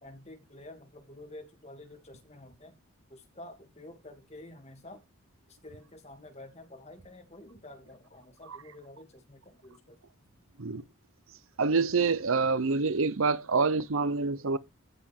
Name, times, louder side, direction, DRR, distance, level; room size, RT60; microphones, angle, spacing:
voice 1, 0.0-2.8 3.1-5.0 5.5-10.0, left 1 dB, 30° left, 2.6 m, -49 dB
voice 2, 11.6-14.6, right 4 dB, 70° right, 0.8 m, -26 dB
14.5 x 6.9 x 3.6 m
head